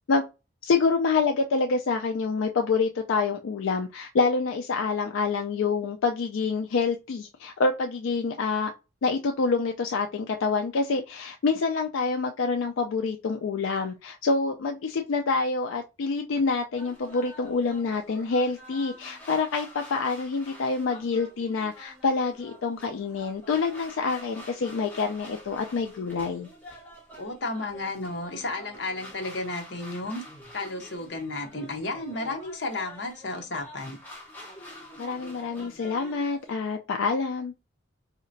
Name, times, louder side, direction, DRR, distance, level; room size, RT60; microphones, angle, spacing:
voice 1, 0.6-8.7 9.0-26.5 35.0-37.5, left 4 dB, 80° left, 0.4 m, -27 dB
sound 1, 16.8-36.5, equal, 10° left, 1.3 m, -47 dB
voice 2, 27.2-30.2 30.5-34.0, left 2 dB, 60° left, 0.8 m, -33 dB
4.1 x 2.8 x 2.6 m
head